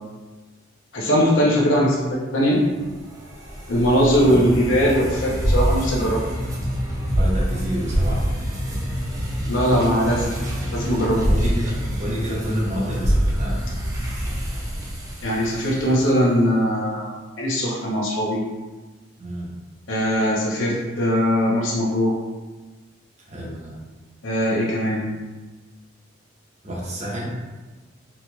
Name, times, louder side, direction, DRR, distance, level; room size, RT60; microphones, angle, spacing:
voice 1, 0.9-2.6 3.7-6.2 9.5-10.3 10.7-11.2 15.2-18.4 19.9-22.1 24.2-25.1, equal, 75° left, -4 dB, 0.7 m, -20 dB
sound 1, 2.7-16.1, equal, 15° right, 0.6 m, -25 dB
voice 2, 4.2-4.6 7.1-8.3 11.2-13.6 19.2-19.5 23.3-23.8 26.6-27.3, equal, 35° right, -5 dB, 0.9 m, -29 dB
4.3 x 2.9 x 2.2 m, 1.2 s
head